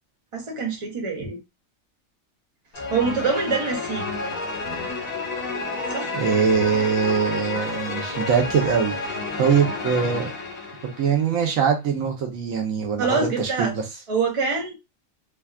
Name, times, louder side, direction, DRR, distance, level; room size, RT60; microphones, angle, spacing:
voice 1, 0.3-1.4 2.9-4.1 5.9-6.2 13.0-13.7 14.1-14.7, right 4 dB, 30° right, 0.7 m, -25 dB
sound 1, 2.7-11.3, left 3 dB, 90° left, 1.5 m, -30 dB
voice 2, 6.1-10.3 11.0-13.8, right 6 dB, 85° right, 1.2 m, -23 dB
3.4 x 2.3 x 2.3 m
omnidirectional pair, 1.4 m